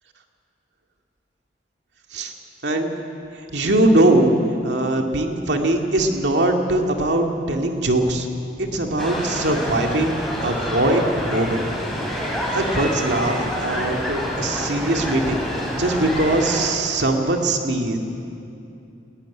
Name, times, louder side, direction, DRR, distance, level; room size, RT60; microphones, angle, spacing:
voice 1, 2.6-2.9 3.5-4.3 4.6-8.3 8.6-11.6 12.5-13.4 13.6-15.4 15.8-18.0, right 1 dB, 85° right, 3 dB, 2.2 m, -21 dB
sound 1, 9.0-16.7, equal, ahead, 3.9 m, -27 dB
20.0 x 16.5 x 9.5 m, 2.7 s
head